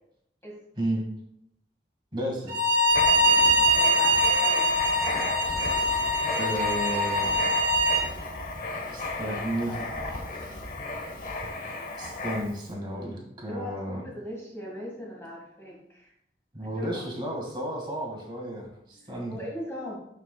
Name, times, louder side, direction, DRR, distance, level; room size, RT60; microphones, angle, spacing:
voice 1, 2.1-2.6 6.3-7.4 8.9-9.8 12.0-14.0 16.5-19.4, right 1 dB, 25° right, -1 dB, 1.8 m, -32 dB
Bowed string instrument, 2.5-8.1, equal, 55° right, 1.5 m, -23 dB
Writing, 2.9-12.7, left 2 dB, 50° left, 1.1 m, -34 dB
voice 2, 3.7-4.7 9.2-9.8 13.5-16.1 16.6-17.0 18.9-20.0, equal, 15° left, -4 dB, 1.7 m, -40 dB
10.5 x 5.6 x 2.3 m, 0.76 s
head